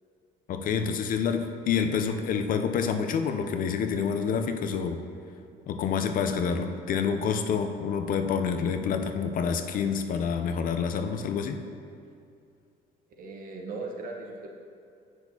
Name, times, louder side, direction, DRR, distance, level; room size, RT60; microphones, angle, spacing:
voice 1, 0.5-5.0 5.7-11.6, left 6 dB, 55° left, 7 dB, 0.5 m, -28 dB
voice 2, 13.2-14.5, right 3 dB, 55° right, 0 dB, 1.0 m, -38 dB
8.8 x 6.1 x 2.8 m, 2.4 s
cardioid pair, 110°, 17 cm